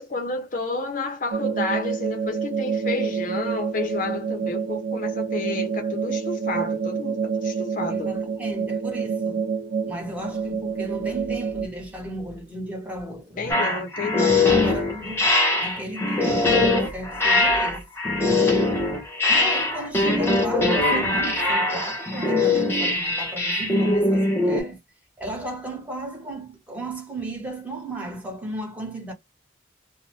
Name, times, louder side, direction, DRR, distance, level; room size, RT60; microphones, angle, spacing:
voice 1, 0.0-8.1 13.4-14.6, left 3 dB, 45° left, 0.6 m, -30 dB
sound 1, 1.3-11.7, right 5 dB, 65° right, 0.5 m, -27 dB
voice 2, 7.9-9.5 9.8-13.8 14.4-17.9 19.3-24.8 25.2-29.1, right 1 dB, 10° right, 1.2 m, -35 dB
sound 2, 13.5-24.6, left 2 dB, 15° left, 0.9 m, -21 dB
2.5 x 2.1 x 3.0 m
head